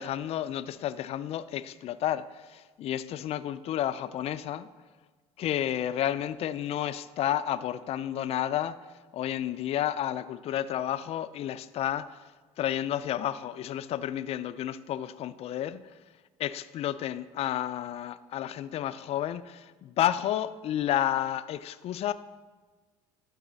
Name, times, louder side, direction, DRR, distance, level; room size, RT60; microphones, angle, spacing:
voice 1, 0.0-4.7 5.4-12.3 12.6-15.9 16.4-22.1, left 11 dB, 50° left, 14 dB, 0.4 m, -31 dB
11.5 x 4.1 x 4.0 m, 1.3 s
supercardioid pair, 90°, 14 cm